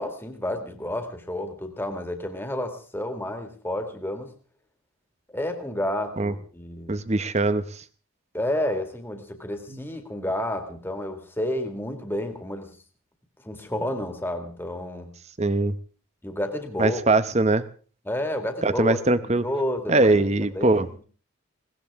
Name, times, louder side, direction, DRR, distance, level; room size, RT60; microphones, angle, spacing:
voice 1, 0.0-4.3 5.3-6.9 8.3-12.8 13.4-15.1 16.2-17.0 18.1-20.3 20.5-20.8, left 1 dB, 10° left, 5 dB, 2.0 m, -30 dB
voice 2, 6.9-7.8 9.7-9.8 15.4-15.8 16.8-17.6 18.6-19.4 19.9-20.9, right 2 dB, 30° right, 14 dB, 0.8 m, -21 dB
21.0 x 18.0 x 3.6 m, 0.39 s
head